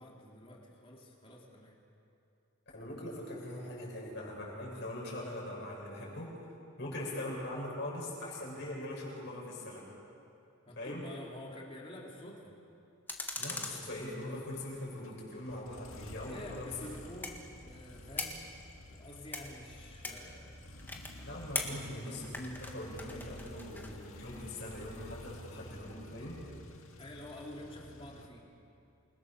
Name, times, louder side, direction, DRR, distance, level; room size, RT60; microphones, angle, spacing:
voice 1, 0.0-1.8 10.7-12.5 16.2-18.6 18.9-20.6 27.0-28.5, left 1 dB, 25° left, -2 dB, 3.7 m, -48 dB
voice 2, 2.7-6.4 6.8-9.8 10.8-11.1 13.4-16.7 21.2-26.4, left 1 dB, 55° left, -3 dB, 7.6 m, -41 dB
sound 1, 13.1-14.6 16.1-23.9, left 2 dB, 10° left, 1.8 m, -43 dB
sound 2, 14.2-28.3, left 1 dB, 75° left, 1.9 m, -51 dB
28.5 x 22.0 x 6.9 m, 2.7 s
head